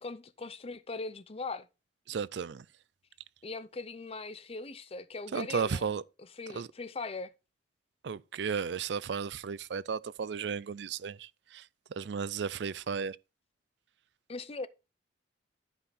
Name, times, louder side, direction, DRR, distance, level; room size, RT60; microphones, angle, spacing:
voice 1, 0.0-1.7 3.4-5.9 6.2-7.3 14.3-14.7, left 3 dB, 30° left, 0.6 m, -40 dB
voice 2, 2.1-2.6 5.3-6.0 6.5-6.7 8.0-11.6 12.0-13.2, right 6 dB, 65° right, 0.4 m, -34 dB
11.5 x 5.5 x 4.1 m
head